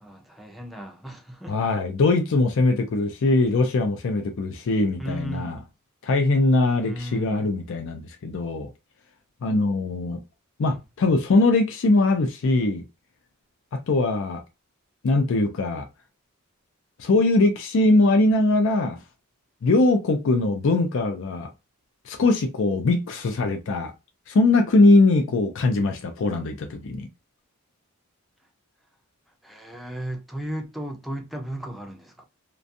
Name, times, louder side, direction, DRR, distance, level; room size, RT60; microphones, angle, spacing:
voice 1, 0.0-1.6 5.0-5.6 6.7-7.4 10.7-10.8 29.4-32.2, right 1 dB, ahead, 0.4 m, -35 dB
voice 2, 1.5-5.6 6.0-8.7 9.4-10.2 10.6-12.8 13.7-14.4 15.0-15.9 17.0-19.0 19.6-21.5 22.1-23.9 24.3-27.1, left 2 dB, 60° left, 0.4 m, -21 dB
2.5 x 2.2 x 2.5 m
head